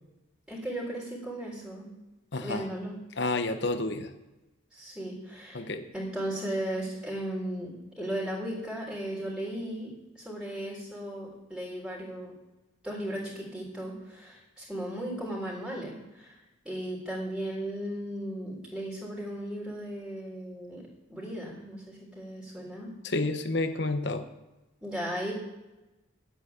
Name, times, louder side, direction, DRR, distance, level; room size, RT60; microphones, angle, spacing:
voice 1, 0.5-1.9 2.4-3.0 4.7-5.6 5.9-12.3 12.8-16.4 16.6-20.8 21.1-22.9 24.8-25.3, right 1 dB, 5° right, -5 dB, 3.5 m, -36 dB
voice 2, 2.3-2.6 3.2-4.1 5.5-5.9 23.0-24.2, left 2 dB, 55° left, 8 dB, 1.0 m, -30 dB
9.5 x 8.3 x 9.4 m, 1.0 s
head